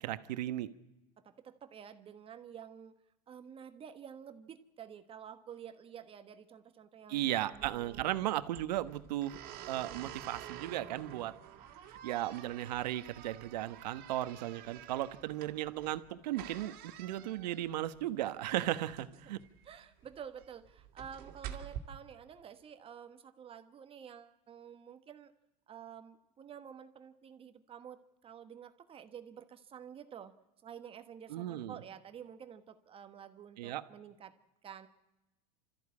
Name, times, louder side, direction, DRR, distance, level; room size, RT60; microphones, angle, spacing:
voice 1, 0.0-0.7 7.1-9.4 9.7-11.3 11.9-19.4 31.3-31.8 33.6-33.8, right 14 dB, 80° right, 12 dB, 1.2 m, -36 dB
voice 2, 1.2-2.9 3.3-8.2 9.2-9.3 19.2-19.3 19.6-25.3 25.7-30.3 30.6-34.3 34.6-34.9, right 8 dB, 25° right, 9 dB, 1.2 m, -50 dB
sound 1, 7.5-21.8, right 10 dB, 45° right, 2.5 m, -49 dB
29.5 x 14.0 x 8.5 m, 1.0 s
supercardioid pair, 130°, 21 cm